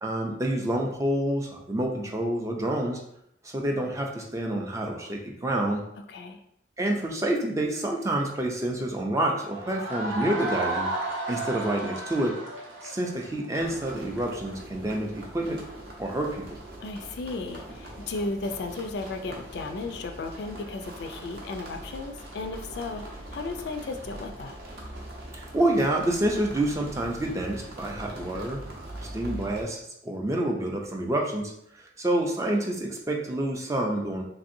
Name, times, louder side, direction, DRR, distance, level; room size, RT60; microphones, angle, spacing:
voice 1, 0.0-3.0 3.4-5.8 6.8-10.9 11.3-12.4 12.8-15.6 16.0-16.6 25.3-28.9 29.1-34.2, right 1 dB, 15° right, 0 dB, 0.3 m, -28 dB
voice 2, 6.1-6.4 16.8-23.0 23.3-24.6, left 3 dB, 60° left, 6 dB, 0.3 m, -35 dB
sound 1, 9.5-14.2, right 2 dB, 90° right, 0.8 m, -33 dB
sound 2, 13.5-29.6, right 1 dB, 55° right, 0.6 m, -42 dB
3.2 x 2.6 x 2.6 m, 0.74 s
head